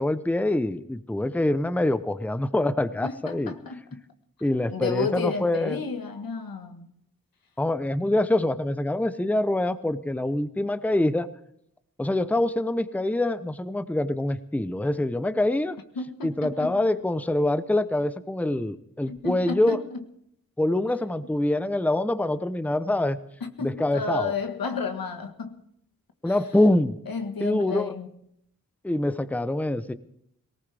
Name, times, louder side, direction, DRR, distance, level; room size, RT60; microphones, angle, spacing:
voice 1, 0.0-3.5 4.4-5.8 7.6-11.3 12.0-15.8 16.2-19.8 20.6-23.2 23.6-24.3 26.2-27.0 27.4-27.9 28.8-29.9, left 1 dB, 5° left, 0.7 m, -25 dB
voice 2, 3.0-4.0 4.7-6.9 15.9-16.7 19.1-20.0 23.4-25.6 26.2-26.4 27.1-28.1, left 5 dB, 90° left, 1.6 m, -32 dB
18.5 x 18.5 x 3.5 m
wide cardioid pair, 70°, 34 cm